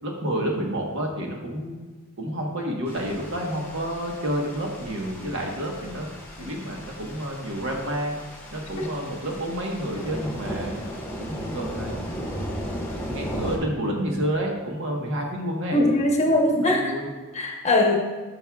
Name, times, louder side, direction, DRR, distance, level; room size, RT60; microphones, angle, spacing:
voice 1, 0.0-1.8 2.2-6.1 6.4-8.1 8.5-10.8 11.2-12.0 13.0-15.8 16.3-17.1, equal, 65° right, 0 dB, 1.3 m, -29 dB
sound 1, 2.9-13.6, equal, 10° left, 1.6 m, -36 dB
voice 2, 15.7-16.9 17.3-18.0, left 1 dB, 30° left, 1 dB, 1.0 m, -21 dB
12.0 x 5.4 x 2.4 m, 1.3 s
head